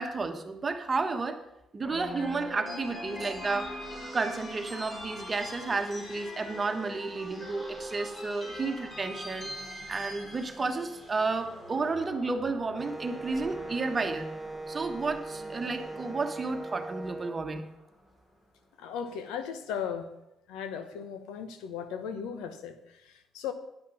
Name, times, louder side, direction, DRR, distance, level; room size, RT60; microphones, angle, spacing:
voice 1, 0.0-1.4 1.7-3.7 4.1-9.5 9.9-14.3 14.7-17.7, right 3 dB, 30° right, 7 dB, 1.3 m, -32 dB
sound 1, 1.8-18.0, equal, 25° left, 3.9 m, -43 dB
Wind instrument woodwind instrument, 12.8-17.4, right 2 dB, ahead, 0.8 m, -40 dB
voice 2, 18.8-20.1 20.5-23.5, left 7 dB, 90° left, 10 dB, 1.0 m, -37 dB
10.0 x 5.9 x 7.6 m, 0.88 s
supercardioid pair, 80°, 0 cm